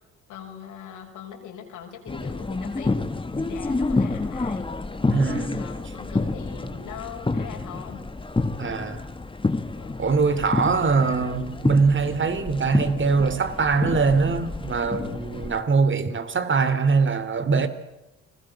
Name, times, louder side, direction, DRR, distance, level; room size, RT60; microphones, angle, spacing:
voice 1, 0.3-3.0 3.4-4.7 5.1-8.1 9.8-9.9 17.6-17.7, left 8 dB, 90° left, 6.4 m, -41 dB
sound 1, 2.1-15.6, left 3 dB, 15° left, 1.7 m, -29 dB
voice 2, 5.1-5.6 8.6-9.1 10.0-17.7, right 4 dB, 40° right, 3.0 m, -22 dB
29.5 x 21.0 x 7.5 m
cardioid pair, 90°, 30 cm